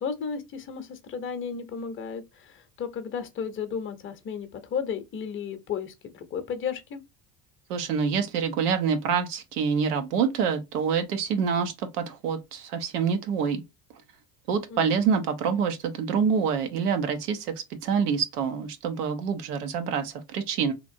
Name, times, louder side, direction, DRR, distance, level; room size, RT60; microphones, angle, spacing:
voice 1, 0.0-7.0 14.7-15.1, left 6 dB, 25° left, 0.7 m, -34 dB
voice 2, 7.7-13.6 14.5-17.5 17.8-20.7, right 6 dB, 85° right, 0.8 m, -26 dB
2.9 x 2.5 x 2.6 m
hypercardioid pair, 80°, 45 cm